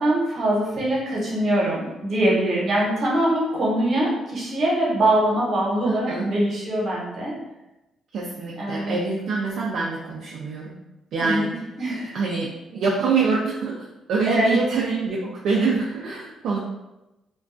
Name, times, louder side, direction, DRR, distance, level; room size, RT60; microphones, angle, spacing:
voice 1, 0.0-7.3 8.6-9.0 11.2-11.5 11.8-12.2 14.3-14.6, right 1 dB, 55° right, -4 dB, 0.9 m, -23 dB
voice 2, 5.8-6.3 8.1-10.8 11.1-11.6 12.1-15.2 15.4-16.6, right 4 dB, 70° right, -3 dB, 0.3 m, -25 dB
2.3 x 2.2 x 2.5 m, 0.98 s
cardioid pair, 90°, 0 cm